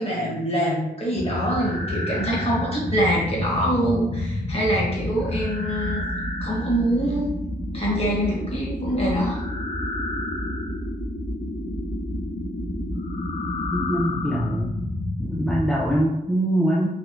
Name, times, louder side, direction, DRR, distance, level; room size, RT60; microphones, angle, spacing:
voice 1, 0.0-6.0 6.4-7.3 7.7-9.4, equal, 35° left, -4 dB, 1.4 m, -24 dB
sound 1, 1.1-16.0, left 1 dB, 75° left, 0.9 m, -29 dB
voice 2, 13.7-14.7 15.2-16.9, right 1 dB, ahead, -4 dB, 0.5 m, -23 dB
3.2 x 2.6 x 3.0 m, 0.86 s
cardioid pair, 80°, 17 cm